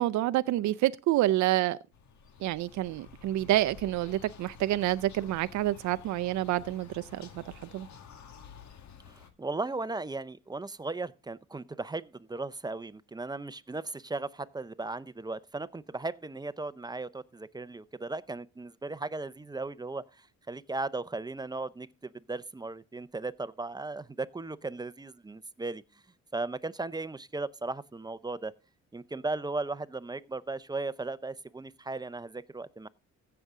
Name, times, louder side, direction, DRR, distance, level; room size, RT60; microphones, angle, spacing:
voice 1, 0.0-1.8 2.4-7.3 7.6-7.9, right 15 dB, 70° right, 0.5 m, -28 dB
sound 1, 1.9-9.3, left 6 dB, 65° left, 1.8 m, -51 dB
voice 2, 9.1-25.8 26.3-28.5 28.9-32.9, right 3 dB, 15° right, 0.5 m, -37 dB
15.5 x 6.8 x 3.7 m
cardioid pair, 90°, 30 cm